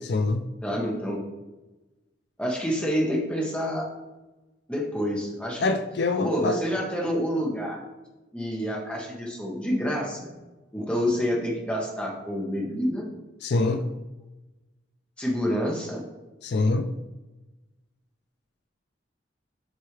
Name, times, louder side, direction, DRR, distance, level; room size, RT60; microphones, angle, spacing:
voice 1, 0.1-0.4 5.6-6.6 13.4-13.8 16.4-16.9, left 3 dB, 60° left, 7 dB, 0.4 m, -24 dB
voice 2, 0.6-1.2 2.4-3.9 4.7-5.6 6.2-7.8 8.3-10.3 10.7-13.1 15.2-16.0, equal, 5° left, -2 dB, 1.2 m, -28 dB
7.8 x 4.4 x 3.3 m, 1.1 s
head